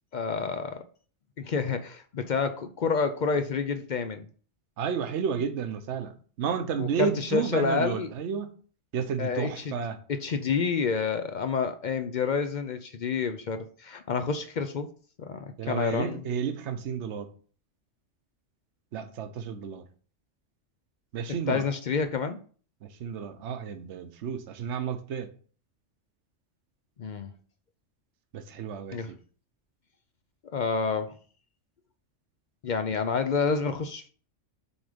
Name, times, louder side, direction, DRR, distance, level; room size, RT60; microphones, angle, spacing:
voice 1, 0.1-0.8 1.4-4.3 6.8-8.1 9.2-9.7 10.1-14.9 15.2-16.3 21.3-22.4 27.0-27.3 28.9-29.1 30.5-31.1 32.6-34.1, left 5 dB, 55° left, 0.5 m, -29 dB
voice 2, 4.8-6.1 6.4-8.5 8.9-10.0 15.6-17.3 18.9-19.8 21.1-21.6 22.8-25.3 28.3-29.0, right 7 dB, 70° right, 1.0 m, -31 dB
7.0 x 3.7 x 5.0 m
omnidirectional pair, 1.3 m